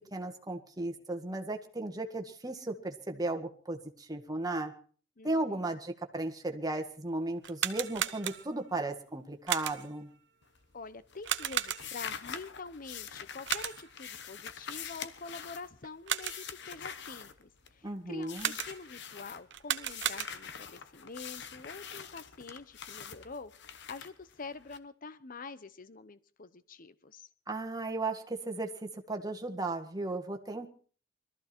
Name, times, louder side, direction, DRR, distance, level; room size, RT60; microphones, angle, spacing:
voice 1, 0.1-4.7 5.2-10.1 17.8-18.5 27.5-30.7, right 2 dB, 20° right, 5 dB, 1.7 m, -35 dB
voice 2, 5.2-5.8 10.7-18.4 18.6-27.3, left 4 dB, 45° left, 14 dB, 0.8 m, -46 dB
sound 1, 7.4-8.7 9.5-10.0 11.2-12.1 13.5-14.0 15.8-16.6 18.4-19.0 19.5-20.6, right 10 dB, 60° right, 1.0 m, -35 dB
sound 2, 10.4-10.9 11.1-17.9 18.2-19.4 19.9-24.8, left 7 dB, 60° left, 1.1 m, -44 dB
21.5 x 14.0 x 4.4 m, 0.43 s
head